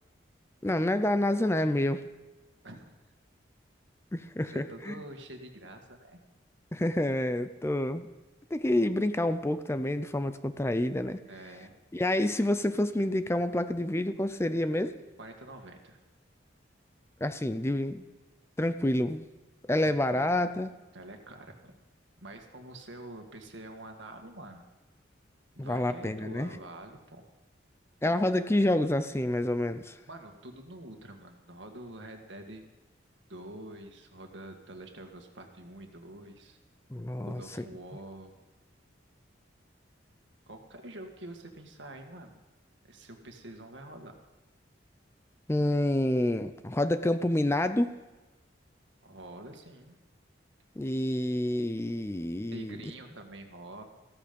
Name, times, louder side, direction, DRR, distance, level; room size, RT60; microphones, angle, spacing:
voice 1, 0.6-2.1 4.1-4.9 6.7-8.1 8.5-11.2 11.9-15.0 17.2-18.0 18.6-19.3 19.7-20.7 25.6-26.5 28.0-30.0 36.9-37.4 45.5-48.0 50.8-52.8, left 1 dB, 15° left, 11 dB, 0.5 m, -28 dB
voice 2, 2.6-3.0 4.5-6.2 11.3-11.8 15.2-16.0 19.8-20.3 20.9-21.8 22.2-24.6 25.5-27.2 30.1-32.6 33.3-36.6 37.2-38.4 40.5-42.4 42.9-44.1 49.0-50.0 52.5-53.8, right 1 dB, 75° right, 4 dB, 1.9 m, -46 dB
15.5 x 13.5 x 5.3 m, 1.2 s
head